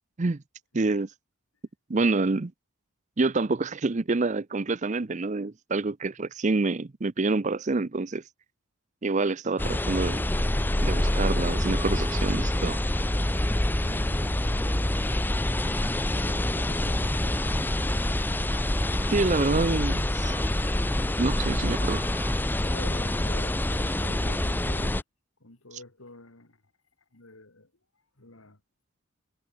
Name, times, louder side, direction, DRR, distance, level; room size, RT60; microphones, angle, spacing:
voice 1, 0.7-1.1 1.9-2.5 3.2-8.2 9.0-10.2 10.8-12.8 19.1-20.3 21.2-22.0, right 3 dB, 35° right, 0.6 m, -27 dB
sound 1, 9.6-25.0, left 1 dB, 10° left, 0.6 m, -26 dB
sound 2, 11.4-22.4, right 3 dB, 15° right, 2.5 m, -49 dB
voice 2, 13.8-15.1 16.1-17.5 19.2-19.8 22.6-25.0 25.4-26.6 27.1-27.7 28.2-28.6, left 2 dB, 85° left, 3.2 m, -46 dB
head